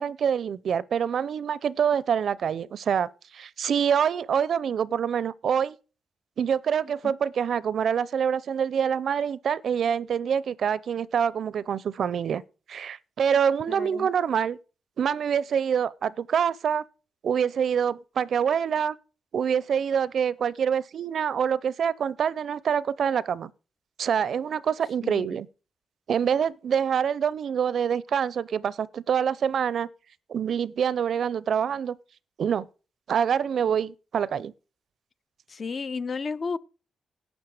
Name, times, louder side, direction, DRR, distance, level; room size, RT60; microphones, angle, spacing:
voice 1, 0.0-5.8 6.4-12.4 12.7-14.6 15.0-16.8 17.2-19.0 19.3-23.5 24.0-25.5 26.1-29.9 30.3-32.0 32.4-32.7 33.1-34.5, right 7 dB, 70° right, 0.6 m, -26 dB
voice 2, 13.7-14.1 25.0-25.4 35.5-36.6, left 4 dB, 45° left, 0.6 m, -32 dB
11.5 x 7.7 x 4.9 m
cardioid pair, 100°, 0 cm